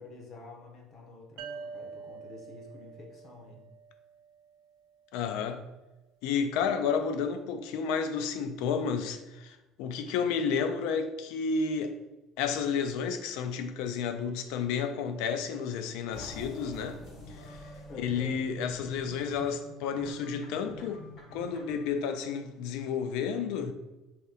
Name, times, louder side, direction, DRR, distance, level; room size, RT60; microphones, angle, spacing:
voice 1, 0.0-3.6 17.9-18.4, left 3 dB, 40° left, 0.8 m, -47 dB
sound 1, 1.4-4.8, right 5 dB, 80° right, 0.4 m, -46 dB
voice 2, 5.1-5.7 6.2-12.0 12.4-17.0 17.3-17.6 18.0-21.0 21.3-23.7, left 6 dB, 80° left, 0.3 m, -31 dB
sound 2, 16.1-21.9, left 2 dB, 60° left, 1.0 m, -47 dB
3.1 x 2.9 x 3.7 m
cardioid pair, 155°, 0 cm